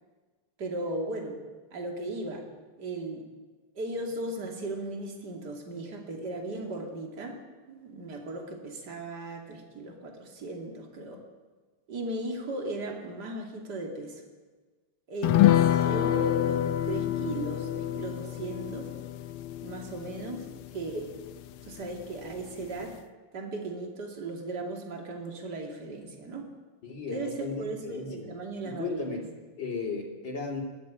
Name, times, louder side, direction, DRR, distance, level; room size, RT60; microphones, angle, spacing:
voice 1, 0.6-1.3 1.7-2.4 2.8-3.2 3.7-7.4 7.7-11.2 11.9-14.2 15.1-18.9 19.6-20.5 20.7-21.1 21.6-22.9 23.3-26.4 27.1-29.2, right 2 dB, 50° right, 2 dB, 3.2 m, -36 dB
sound 1, 15.2-22.0 22.3-22.4 22.8-22.9, left 12 dB, 75° left, 1.7 m, -27 dB
voice 2, 26.8-28.3 28.7-29.2 29.6-30.6, left 4 dB, 55° left, 1 dB, 3.8 m, -35 dB
21.0 x 16.0 x 8.9 m, 1.3 s
omnidirectional pair, 2.4 m